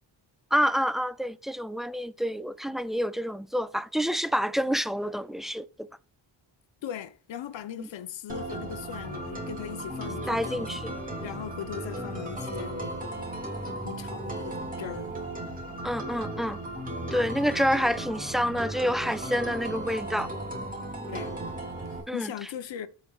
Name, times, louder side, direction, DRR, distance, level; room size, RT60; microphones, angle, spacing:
voice 1, 0.5-5.9 7.8-7.9 10.3-10.9 15.8-16.6 17.1-20.3 22.1-22.3, equal, ahead, 0.3 m, -28 dB
voice 2, 6.8-10.7 11.2-13.3 13.8-15.1 21.1-21.4 21.9-22.9, left 10 dB, 75° left, 0.9 m, -39 dB
sound 1, 8.3-22.0, right 1 dB, 20° right, 3.0 m, -36 dB
15.0 x 5.3 x 2.4 m
cardioid pair, 100°, 45 cm